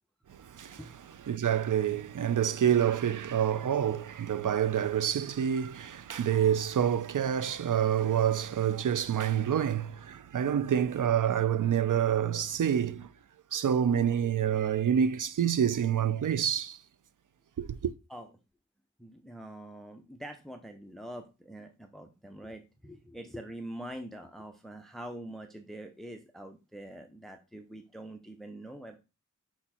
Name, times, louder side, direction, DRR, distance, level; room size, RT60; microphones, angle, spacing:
voice 1, 0.4-13.1 13.5-16.8 17.6-17.9, right 9 dB, 75° right, 0.5 m, -27 dB
voice 2, 19.0-29.0, right 1 dB, ahead, 0.6 m, -44 dB
5.7 x 4.4 x 4.3 m
wide cardioid pair, 100°, 31 cm